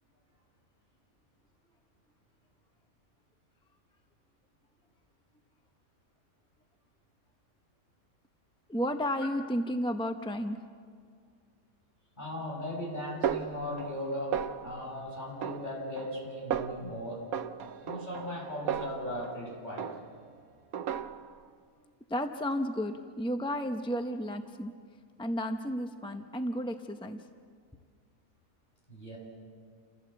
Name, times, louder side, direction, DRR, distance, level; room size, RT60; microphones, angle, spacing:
voice 1, 8.7-10.6 22.1-24.7 25.2-27.3, equal, 5° left, 6 dB, 0.4 m, -32 dB
voice 2, 12.2-17.2 17.8-19.9 28.9-29.2, left 1 dB, 30° left, -4 dB, 6.8 m, -37 dB
Snare drum, 13.2-14.1 14.3-14.9 15.4-16.2 16.5-16.9 17.3-19.4 19.8-20.3 20.7-21.4, right 9 dB, 80° right, 1.2 m, -35 dB
28.5 x 15.5 x 7.6 m, 2.1 s
omnidirectional pair, 1.5 m